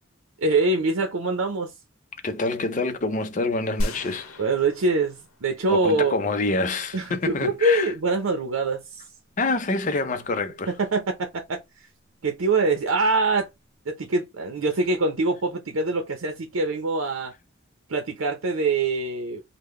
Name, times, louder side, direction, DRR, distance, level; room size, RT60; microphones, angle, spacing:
voice 1, 0.4-1.7 4.4-6.1 6.9-9.0 10.7-11.6 12.2-13.5 13.9-17.3 17.9-19.4, right 3 dB, 90° right, 0.7 m, -24 dB
voice 2, 2.2-4.4 5.7-7.9 9.4-10.7, left 3 dB, 40° left, 0.5 m, -26 dB
sound 1, 3.8-6.1, equal, 85° left, 0.9 m, -33 dB
3.7 x 2.2 x 3.1 m
head